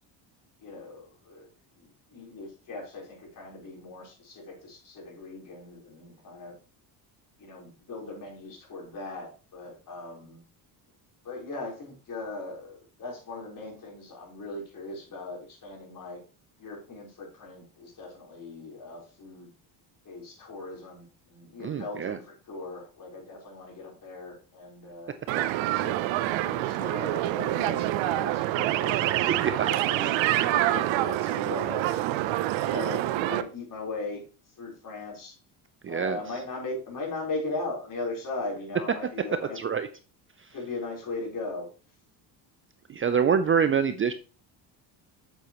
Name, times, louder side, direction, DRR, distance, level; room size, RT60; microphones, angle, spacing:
voice 1, 0.6-1.5 1.8-6.5 7.4-10.4 11.2-16.2 16.6-19.5 20.0-25.1 25.7-26.1 26.3-29.1 29.5-30.2 30.6-31.8 32.6-34.2 34.6-35.3 35.8-39.6 40.5-41.7, left 3 dB, 45° left, -2 dB, 4.0 m, -38 dB
voice 2, 21.6-22.2 29.3-29.7 35.8-36.2 39.5-39.9 40.4-40.5 42.9-44.1, right 7 dB, 30° right, 10 dB, 0.4 m, -26 dB
sound 1, 25.3-33.4, right 14 dB, 75° right, 0.7 m, -26 dB
7.6 x 7.2 x 3.0 m, 0.37 s
cardioid pair, 105°, 46 cm